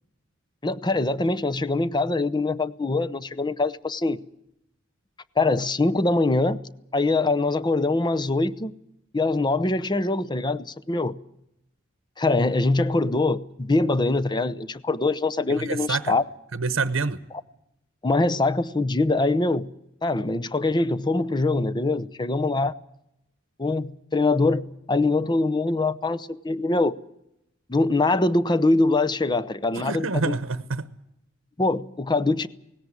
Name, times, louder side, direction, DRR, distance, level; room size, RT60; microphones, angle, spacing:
voice 1, 0.6-4.2 5.4-6.6 6.9-8.7 9.1-11.1 12.2-16.2 18.0-19.7 20.0-22.8 23.6-27.0 27.7-30.4 31.6-32.5, left 2 dB, 20° left, 13 dB, 0.8 m, -23 dB
voice 2, 15.5-16.1 16.5-17.2 29.7-30.9, right 4 dB, 70° right, 13 dB, 1.0 m, -27 dB
18.5 x 17.0 x 9.7 m, 0.82 s
head